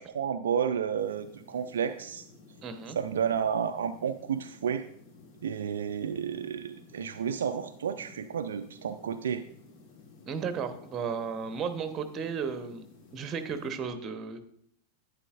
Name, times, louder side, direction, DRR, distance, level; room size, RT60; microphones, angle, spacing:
voice 1, 0.0-2.3 3.0-4.9 5.4-9.4, right 7 dB, 65° right, 8 dB, 0.4 m, -31 dB
sound 1, 1.0-13.8, left 3 dB, 40° left, 1.5 m, -54 dB
voice 2, 2.6-3.0 10.3-12.8 13.1-14.4, right 6 dB, 30° right, 9 dB, 0.9 m, -34 dB
11.0 x 9.6 x 2.5 m, 0.68 s
figure-of-eight pair, 90°, 0 cm